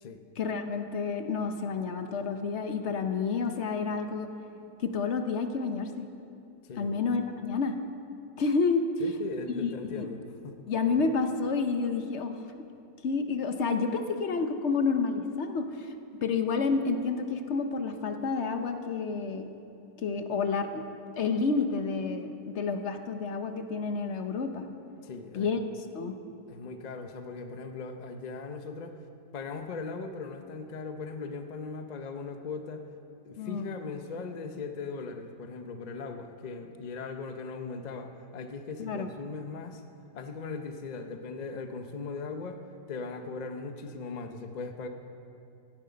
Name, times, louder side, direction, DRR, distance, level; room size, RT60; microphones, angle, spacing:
voice 1, 0.4-4.3 4.8-6.0 6.8-7.7 8.4-8.8 9.5-10.1 10.7-12.4 13.0-15.9 16.2-19.5 20.0-20.8 21.1-24.7 25.3-25.6 25.9-26.1 33.4-33.7 38.8-39.1, left 4 dB, 55° left, 6 dB, 0.8 m, -29 dB
voice 2, 6.6-7.0 9.0-10.6 25.0-25.5 26.5-29.0 29.3-32.8 33.2-39.8 40.1-42.6 42.9-44.9, left 4 dB, 75° left, 6 dB, 0.4 m, -39 dB
16.0 x 10.5 x 5.1 m, 2.6 s
omnidirectional pair, 1.9 m